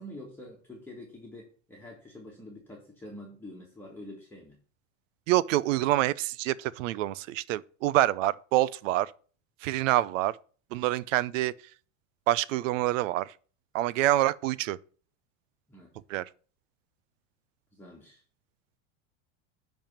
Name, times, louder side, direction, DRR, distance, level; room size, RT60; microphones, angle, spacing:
voice 1, 0.0-4.6 15.7-15.9 17.7-18.2, left 1 dB, 5° left, 1.5 m, -46 dB
voice 2, 5.3-9.1 9.6-10.4 10.7-11.5 12.3-13.3 13.7-14.8 16.1-16.3, right 15 dB, 80° right, 0.6 m, -26 dB
10.5 x 3.6 x 7.2 m
supercardioid pair, 140°, 38 cm